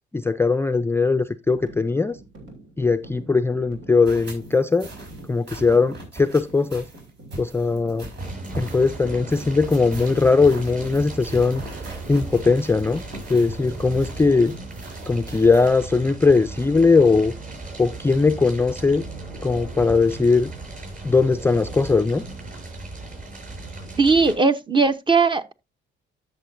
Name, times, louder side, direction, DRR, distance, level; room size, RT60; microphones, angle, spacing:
voice 1, 0.1-2.2 2.8-4.9 5.3-6.8 7.4-8.1 8.6-11.6 12.1-13.0 13.3-14.5 15.1-17.3 17.8-19.0 19.4-20.5 21.0-22.2, left 4 dB, 10° left, 0.4 m, -19 dB
sound 1, 1.5-11.1, right 2 dB, 85° right, 3.1 m, -46 dB
sound 2, 4.0-15.7, right 2 dB, 60° right, 5.2 m, -40 dB
Fire, 8.2-24.3, right 3 dB, 45° right, 6.9 m, -36 dB
voice 2, 24.0-25.5, right 4 dB, 25° right, 0.8 m, -18 dB
12.5 x 6.6 x 2.6 m
cardioid pair, 90°, 20 cm